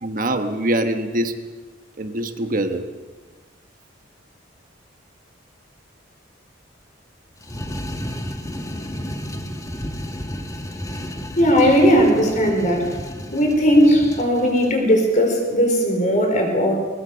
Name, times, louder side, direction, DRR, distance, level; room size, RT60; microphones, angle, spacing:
voice 1, 0.0-1.4 2.0-2.9 11.9-12.1, right 1 dB, 45° right, 7 dB, 1.3 m, -24 dB
sound 1, 7.4-14.8, equal, 15° left, 1.5 m, -32 dB
voice 2, 11.4-12.9 13.3-16.8, equal, 40° left, 3 dB, 4.8 m, -17 dB
21.5 x 20.5 x 6.8 m, 1.4 s
head